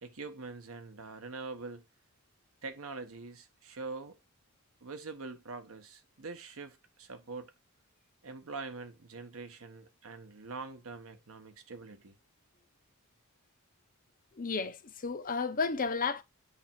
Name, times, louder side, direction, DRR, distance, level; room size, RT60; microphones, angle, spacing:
voice 1, 0.0-1.8 2.6-4.2 4.8-7.5 8.2-12.1, right 3 dB, 65° right, 0.9 m, -44 dB
voice 2, 14.4-16.2, left 4 dB, 40° left, 0.7 m, -32 dB
8.5 x 3.4 x 4.3 m
head